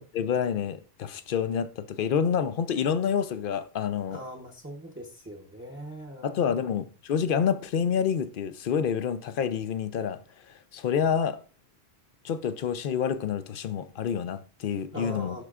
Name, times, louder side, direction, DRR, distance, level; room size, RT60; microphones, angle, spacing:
voice 1, 0.0-4.2 6.2-10.2 10.5-11.4 12.2-15.4, left 7 dB, 60° left, 0.7 m, -28 dB
voice 2, 4.1-6.8 14.9-15.4, equal, 15° right, 0.8 m, -41 dB
11.5 x 4.5 x 2.4 m
omnidirectional pair, 1.1 m